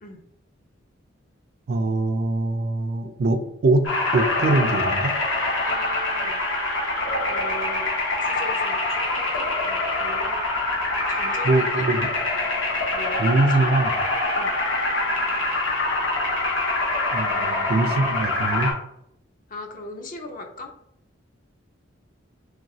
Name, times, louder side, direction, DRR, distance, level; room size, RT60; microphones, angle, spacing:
voice 1, 1.7-5.2 11.4-12.1 13.2-14.0 17.1-18.7, right 2 dB, 50° right, 8 dB, 0.3 m, -23 dB
sound 1, 3.8-18.7, left 2 dB, 80° left, 1.0 m, -25 dB
voice 2, 5.6-6.4 7.3-7.9 8.2-10.4 11.1-11.9 12.9-13.8 14.3-14.6 17.3-18.1 19.5-20.7, left 1 dB, 40° left, 4 dB, 0.5 m, -39 dB
3.2 x 2.9 x 2.6 m, 0.76 s
head